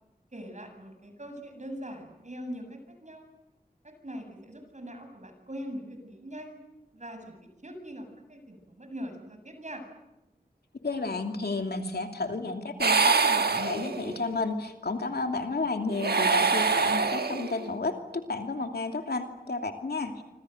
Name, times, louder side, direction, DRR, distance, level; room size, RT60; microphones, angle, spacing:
voice 1, 0.3-3.3 4.0-6.6 6.9-9.8, equal, 45° right, 6 dB, 7.6 m, -42 dB
voice 2, 10.8-20.2, left 3 dB, 85° left, 5 dB, 2.8 m, -32 dB
sound 1, 12.8-14.3 15.9-17.7, right 5 dB, 90° right, 1.3 m, -25 dB
27.0 x 26.0 x 8.0 m, 0.93 s
wide cardioid pair, 45°, 16 cm